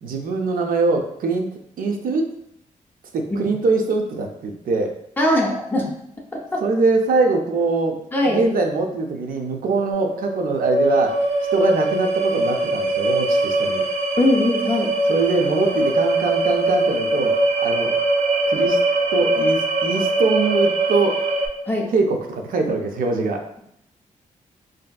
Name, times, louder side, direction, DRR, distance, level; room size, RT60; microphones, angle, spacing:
voice 1, 0.0-1.5 1.8-2.3 3.1-5.0 6.6-8.0 8.3-11.2 11.5-13.8 15.1-17.9 18.5-18.8 19.1-21.2 21.9-23.4, right 3 dB, 90° right, 4 dB, 0.4 m, -22 dB
voice 2, 5.2-5.9 6.3-6.6 8.1-8.5 14.2-14.9 21.7-21.9, left 1 dB, 15° left, -2 dB, 0.4 m, -20 dB
sound 1, 9.9-21.5, right 2 dB, 50° right, 0.7 m, -21 dB
3.2 x 2.6 x 2.2 m, 0.74 s
wide cardioid pair, 140°, 14 cm